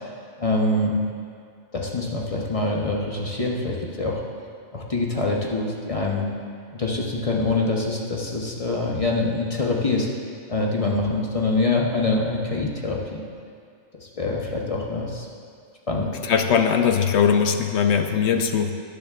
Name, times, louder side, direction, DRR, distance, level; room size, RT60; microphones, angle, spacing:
voice 1, 0.4-0.9 1.7-4.2 4.7-6.3 6.7-10.1 10.5-13.2 14.2-15.3 15.9-16.1, left 2 dB, 30° left, -2 dB, 0.9 m, -25 dB
voice 2, 16.2-18.7, left 7 dB, 65° left, 6 dB, 0.8 m, -20 dB
19.5 x 7.0 x 2.4 m, 2.2 s
omnidirectional pair, 1.4 m